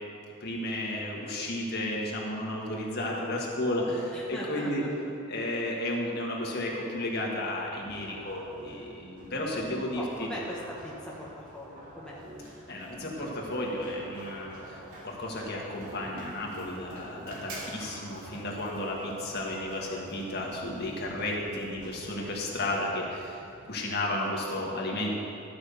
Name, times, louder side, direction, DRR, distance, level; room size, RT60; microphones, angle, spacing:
voice 1, 0.4-4.8 5.3-10.3 12.7-25.1, left 1 dB, 50° left, -2 dB, 1.7 m, -33 dB
voice 2, 4.1-4.9 9.7-12.2, left 1 dB, 5° left, -5 dB, 1.1 m, -40 dB
sound 1, 7.1-21.9, equal, 40° right, 2.7 m, -49 dB
Run, 7.6-23.7, right 1 dB, 80° right, 2.2 m, -50 dB
12.5 x 6.0 x 6.8 m, 2.7 s
head